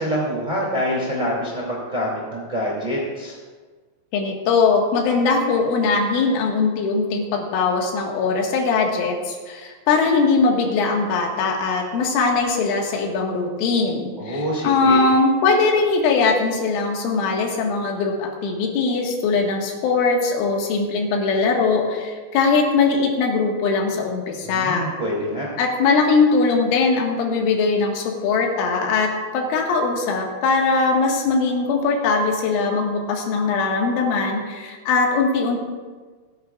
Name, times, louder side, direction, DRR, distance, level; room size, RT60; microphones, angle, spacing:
voice 1, 0.0-3.4 14.2-15.0 24.4-25.5, equal, 20° right, -5 dB, 1.4 m, -26 dB
voice 2, 4.1-24.9 25.6-35.6, left 4 dB, 80° left, 1 dB, 4.1 m, -20 dB
28.0 x 10.5 x 2.4 m, 1.4 s
omnidirectional pair, 5.6 m